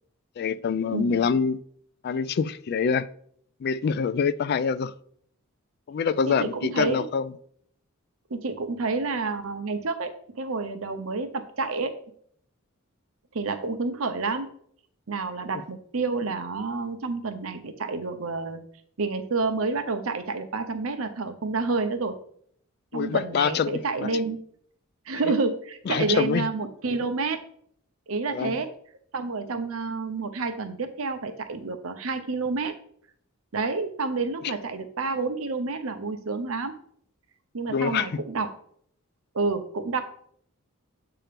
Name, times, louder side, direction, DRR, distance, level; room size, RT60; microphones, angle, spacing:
voice 1, 0.4-1.6 2.0-3.1 3.6-4.9 5.9-7.3 22.9-24.1 25.9-26.5 28.3-28.6 37.7-38.2, left 6 dB, 45° left, 0.3 m, -25 dB
voice 2, 0.9-1.2 6.3-7.1 8.3-11.9 13.3-14.5 15.1-18.6 19.0-22.1 22.9-24.4 25.1-27.4 28.1-28.7 29.1-32.7 33.5-36.7 37.5-38.5 39.3-40.0, right 3 dB, 75° right, 0.8 m, -29 dB
7.7 x 2.9 x 5.1 m
head